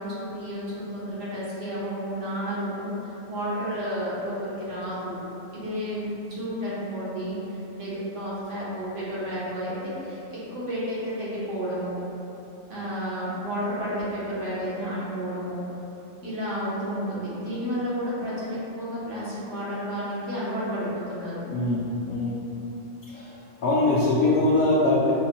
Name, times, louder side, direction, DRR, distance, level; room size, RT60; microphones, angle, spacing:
voice 1, 0.0-5.1 5.5-12.0 12.7-15.6 16.2-21.4, equal, 85° right, -9 dB, 1.4 m, -31 dB
voice 2, 21.5-22.4 23.1-25.1, left 2 dB, 55° left, -8 dB, 0.6 m, -23 dB
5.4 x 2.2 x 2.9 m, 2.9 s
omnidirectional pair, 1.2 m